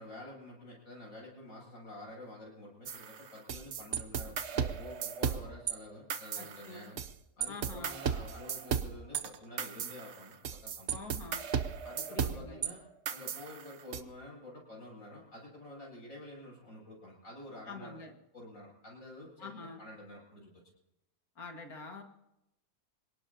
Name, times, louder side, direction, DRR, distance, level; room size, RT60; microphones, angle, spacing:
voice 1, 0.0-7.0 7.4-10.3 10.6-11.1 11.8-12.8 13.1-18.0 18.3-20.5, left 1 dB, 70° left, -3 dB, 8.2 m, -49 dB
sound 1, 2.9-5.7 6.1-7.1 7.4-12.7 13.1-14.0, right 7 dB, 55° right, 1.0 m, -35 dB
voice 2, 6.4-6.9 7.5-8.0 10.9-11.5 12.1-12.6 17.7-18.1 19.4-19.8 21.4-22.0, left 4 dB, 90° left, 3 dB, 2.6 m, -46 dB
27.0 x 18.5 x 2.9 m, 0.88 s
omnidirectional pair, 1.5 m